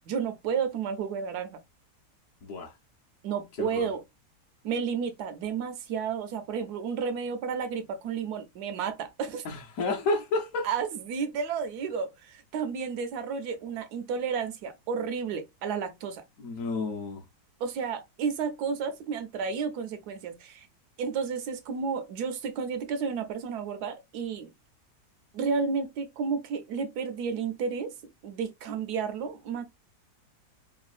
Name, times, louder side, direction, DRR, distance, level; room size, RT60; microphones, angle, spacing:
voice 1, 0.1-1.6 3.2-4.0 4.6-9.5 10.6-16.2 17.6-20.7 21.0-24.5 25.3-27.9 28.2-29.6, right 6 dB, 75° right, 1.1 m, -32 dB
voice 2, 2.4-2.7 3.6-3.9 9.4-10.7 16.4-17.2, left 3 dB, 65° left, 1.0 m, -30 dB
3.2 x 2.2 x 2.4 m
omnidirectional pair, 1.7 m